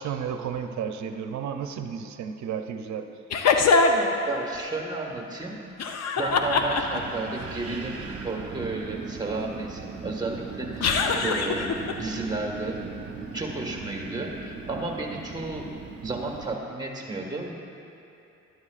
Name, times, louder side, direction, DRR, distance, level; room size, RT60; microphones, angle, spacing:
voice 1, 0.0-3.2, right 7 dB, 70° right, 7 dB, 0.7 m, -32 dB
sound 1, 3.3-4.1 5.8-7.2 10.8-11.9, left 4 dB, 60° left, 0.8 m, -22 dB
voice 2, 4.3-5.6 6.2-10.9 11.2-11.7 12.0-12.8 13.3-15.7 16.0-17.6, right 2 dB, 15° right, -1 dB, 1.6 m, -33 dB
Wind, 6.3-16.5, right 4 dB, 50° right, 1.0 m, -38 dB
12.5 x 11.0 x 2.5 m, 2.8 s
cardioid pair, 90°, 30 cm